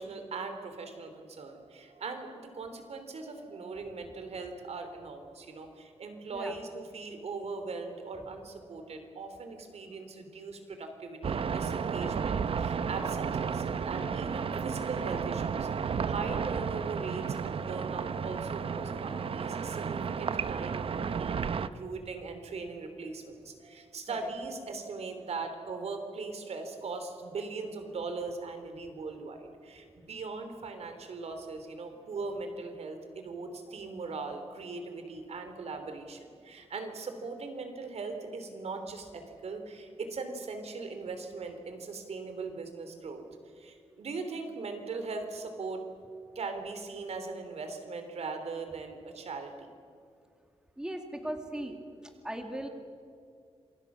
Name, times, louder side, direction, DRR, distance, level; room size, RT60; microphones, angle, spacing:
voice 1, 0.0-43.2 43.6-45.9 46.3-49.7, right 4 dB, 75° right, 6 dB, 3.3 m, -40 dB
sound 1, 11.2-21.7, right 6 dB, 60° right, 0.8 m, -32 dB
voice 2, 50.8-51.8 52.2-52.7, right 1 dB, 5° right, 4 dB, 2.2 m, -37 dB
27.5 x 24.5 x 6.3 m, 2.4 s
wide cardioid pair, 175°, 11 cm